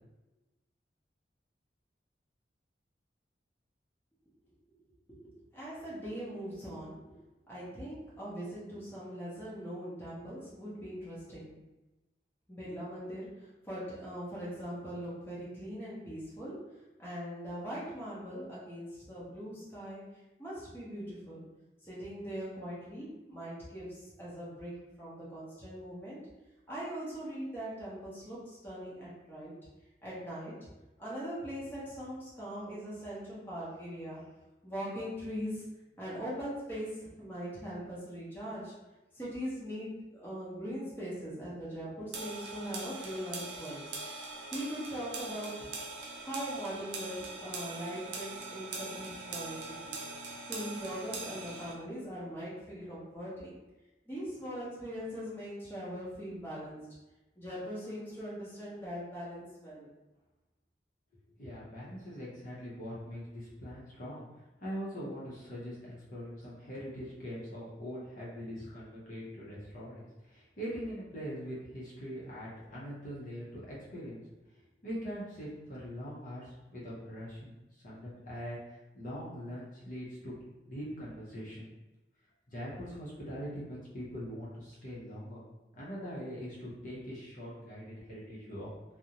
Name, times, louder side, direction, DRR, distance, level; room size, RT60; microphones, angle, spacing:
voice 1, 5.1-7.2 7.5-11.6 12.5-16.6 17.0-20.1 20.4-21.4 21.8-26.3 26.7-29.5 30.0-30.6 31.0-34.2 34.6-35.6 36.0-38.7 39.1-43.8 44.5-45.7 46.2-50.0 50.5-53.6 54.1-56.8 57.4-59.9, equal, 10° left, -9 dB, 0.7 m, -41 dB
sound 1, 42.1-51.7, right 3 dB, 80° right, 0.5 m, -42 dB
voice 2, 61.4-64.2 64.6-74.2 74.8-77.5 77.8-80.3 80.7-81.7 82.5-85.4 85.7-88.7, equal, 45° left, -7 dB, 0.6 m, -42 dB
2.4 x 2.0 x 2.8 m, 1.0 s
head